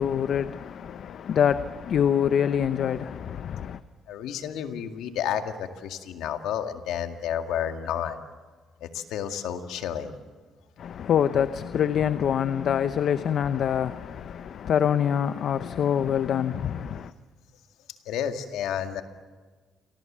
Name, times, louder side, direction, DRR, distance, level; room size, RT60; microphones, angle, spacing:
voice 1, 0.0-3.8 10.8-17.1, left 8 dB, 65° left, 0.8 m, -25 dB
voice 2, 4.1-8.2 8.8-10.2 18.1-19.0, left 9 dB, 90° left, 2.0 m, -31 dB
29.5 x 23.5 x 7.5 m
cardioid pair, 90°, 0 cm